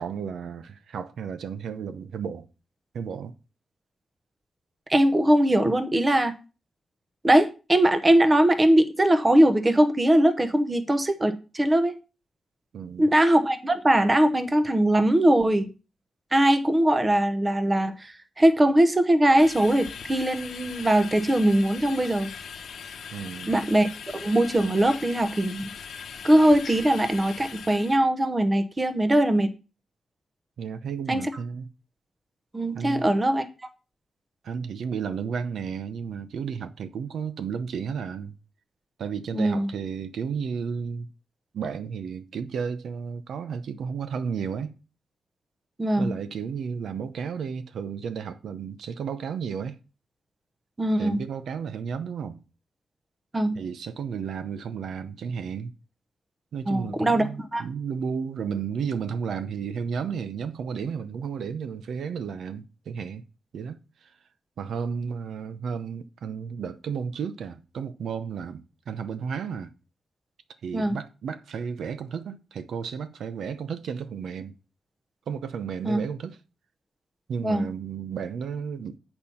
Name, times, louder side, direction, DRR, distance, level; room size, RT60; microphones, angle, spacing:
voice 1, 0.0-2.5 2.9-3.3 12.7-13.1 23.1-23.6 30.6-31.7 32.7-33.0 34.4-38.4 39.0-41.1 41.5-44.8 46.0-49.8 51.0-52.4 53.5-55.7 56.5-63.2 63.5-64.1 64.6-69.7 70.6-74.5 75.3-76.4 77.3-79.0, right 6 dB, 90° right, 0.7 m, -33 dB
voice 2, 4.9-6.3 7.2-12.0 13.0-15.7 16.3-22.3 23.5-23.9 24.1-25.7 26.2-29.5 31.1-31.3 32.5-33.4 39.3-39.7 45.8-46.1 50.8-51.2 53.3-53.6 56.7-57.6 70.7-71.0 75.8-76.0 77.4-77.7, right 1 dB, 20° right, 0.8 m, -21 dB
sound 1, 19.4-28.0, left 6 dB, 80° left, 0.9 m, -40 dB
8.6 x 4.5 x 5.6 m
wide cardioid pair, 145°, 0 cm